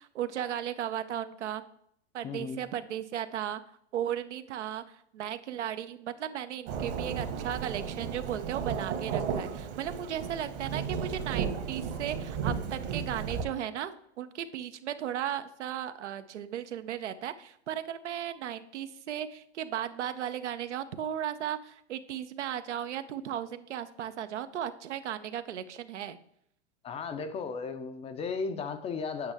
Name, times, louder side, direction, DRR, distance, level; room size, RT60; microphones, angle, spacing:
voice 1, 0.0-1.6 2.1-3.6 3.9-26.2, right 10 dB, 80° right, 11 dB, 0.7 m, -36 dB
voice 2, 2.2-2.6 26.8-29.3, left 5 dB, 20° left, 9 dB, 0.5 m, -35 dB
Thunderstorm / Rain, 6.7-13.4, right 6 dB, 50° right, 1.4 m, -34 dB
8.8 x 5.3 x 3.5 m, 0.70 s
hypercardioid pair, 115°, 35 cm